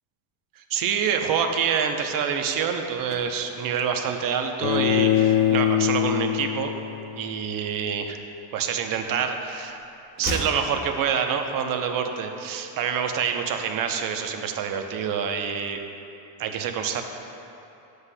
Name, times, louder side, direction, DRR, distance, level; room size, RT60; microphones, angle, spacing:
voice 1, 0.6-6.7 7.2-8.2 8.5-9.8 10.2-15.8 16.4-17.0, right 7 dB, 45° right, 5 dB, 0.7 m, -26 dB
sound 1, 2.9-5.4 5.6-5.9 6.2-7.7 8.0-9.3 9.6-11.7 11.9-12.0, left 1 dB, 20° left, 1.0 m, -39 dB
Bowed string instrument, 4.6-7.7, left 11 dB, 60° left, 0.7 m, -23 dB
11.5 x 7.9 x 2.2 m, 3.0 s
cardioid pair, 125°, 49 cm